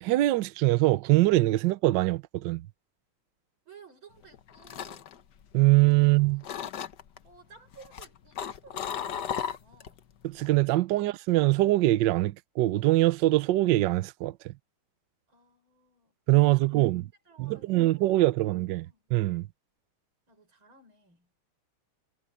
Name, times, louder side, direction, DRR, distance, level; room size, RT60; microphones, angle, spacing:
voice 1, 0.0-2.7 5.5-6.4 10.2-14.5 16.3-17.1 17.4-19.5, right 17 dB, 70° right, 1.2 m, -23 dB
voice 2, 3.7-5.1 6.0-6.5 7.2-10.0 15.3-16.1 16.6-16.8 17.3-18.3 18.8-19.0 20.3-21.4, right 4 dB, 85° right, 7.0 m, -56 dB
sound 1, 4.2-6.1 6.4-7.2 7.7-10.0 10.3-10.7, left 8 dB, 60° left, 1.5 m, -35 dB
omnidirectional pair, 2.2 m